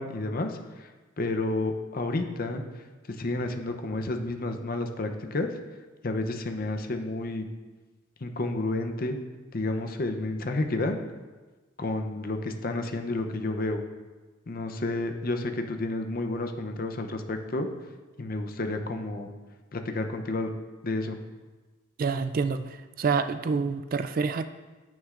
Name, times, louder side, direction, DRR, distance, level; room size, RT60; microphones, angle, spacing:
voice 1, 0.0-5.5 6.0-7.5 8.2-9.2 9.5-11.0 11.8-13.8 14.5-17.7 18.2-19.3 19.7-20.5 20.8-21.2, left 2 dB, 45° left, 5 dB, 0.7 m, -31 dB
voice 2, 22.0-24.5, right 5 dB, 45° right, 11 dB, 0.3 m, -27 dB
9.7 x 8.6 x 2.5 m, 1.3 s
head